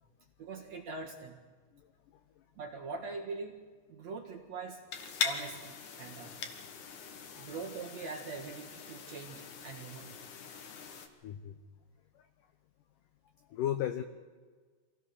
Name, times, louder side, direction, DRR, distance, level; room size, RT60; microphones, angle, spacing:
voice 1, 0.4-1.3 2.6-4.9 5.2-6.4 7.4-10.3, right 4 dB, 55° right, 3 dB, 2.3 m, -43 dB
sound 1, 4.9-11.1, left 6 dB, 55° left, 2.4 m, -41 dB
voice 2, 11.2-11.6 13.5-14.0, left 11 dB, 80° left, 8 dB, 1.9 m, -34 dB
25.5 x 17.0 x 6.8 m, 1.5 s
omnidirectional pair, 4.8 m